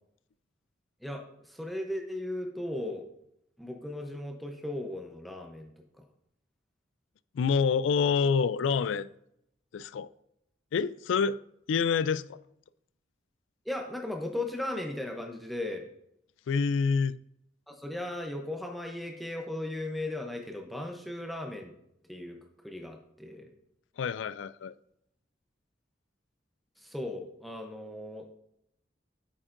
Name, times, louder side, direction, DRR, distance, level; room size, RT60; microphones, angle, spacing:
voice 1, 1.0-3.1 3.6-5.7 6.0-6.1 13.7-15.9 17.7-21.7 22.1-22.4 22.6-23.5 26.8-28.3, left 1 dB, ahead, 0.7 m, -37 dB
voice 2, 7.3-9.1 9.7-10.1 10.7-11.4 11.7-12.4 16.5-17.2 24.0-24.7, left 5 dB, 85° left, 0.3 m, -27 dB
8.7 x 7.2 x 2.5 m
head